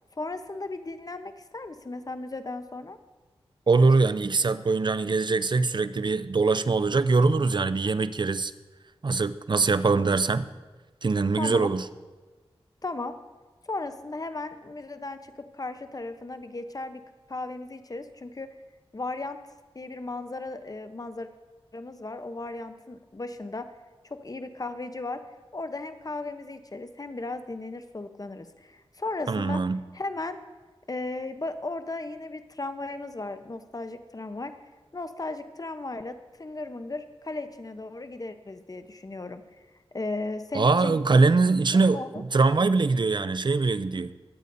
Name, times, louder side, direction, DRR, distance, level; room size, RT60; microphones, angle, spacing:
voice 1, 0.1-3.0 11.4-11.7 12.8-13.1 13.7-17.0 17.3-18.5 18.9-19.4 19.7-21.3 21.7-23.7 24.0-25.2 25.5-29.6 29.9-30.4 30.9-34.6 34.9-39.4 39.9-41.0 41.7-42.2, left 2 dB, 35° left, 9 dB, 0.8 m, -36 dB
voice 2, 3.7-8.5 9.0-10.5 11.0-11.9 29.3-29.8 40.5-44.1, right 3 dB, 45° right, 14 dB, 0.5 m, -23 dB
21.0 x 8.2 x 2.7 m, 1.3 s
cardioid pair, 40°, 10 cm